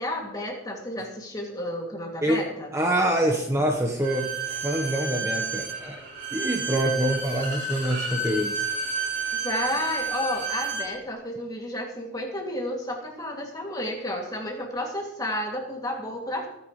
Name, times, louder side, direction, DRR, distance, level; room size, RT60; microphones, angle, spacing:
voice 1, 0.0-2.7 9.4-16.5, left 1 dB, 20° left, 0 dB, 2.6 m, -31 dB
voice 2, 2.7-6.0 6.3-8.7, right 1 dB, 15° right, 1 dB, 1.2 m, -25 dB
Bowed string instrument, 4.0-10.9, right 3 dB, 75° right, 3.8 m, -30 dB
22.5 x 9.7 x 3.3 m, 0.82 s
head